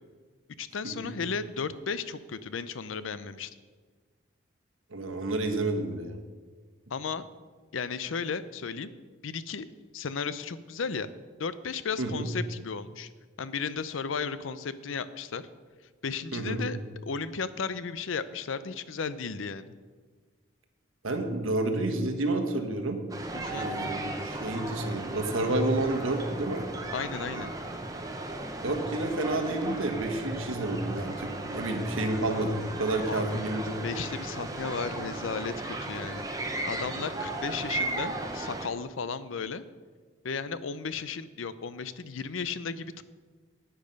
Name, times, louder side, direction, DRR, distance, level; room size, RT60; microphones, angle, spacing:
voice 1, 0.6-3.5 6.9-7.2 7.7-8.9 9.2-9.7 9.9-11.1 11.4-13.1 13.4-15.4 16.0-16.8 17.0-19.7 23.3-23.7 26.9-27.5 33.1-33.4 33.8-36.3 36.7-39.6 40.2-43.0, left 5 dB, 80° left, 14 dB, 0.6 m, -34 dB
voice 2, 4.9-6.2 12.0-12.3 16.3-16.6 21.0-23.0 23.5-26.6 28.6-33.7, right 2 dB, 90° right, 6 dB, 1.3 m, -30 dB
sound 1, 23.1-38.7, right 2 dB, 15° right, 0.8 m, -36 dB
10.0 x 9.0 x 5.3 m, 1.5 s
head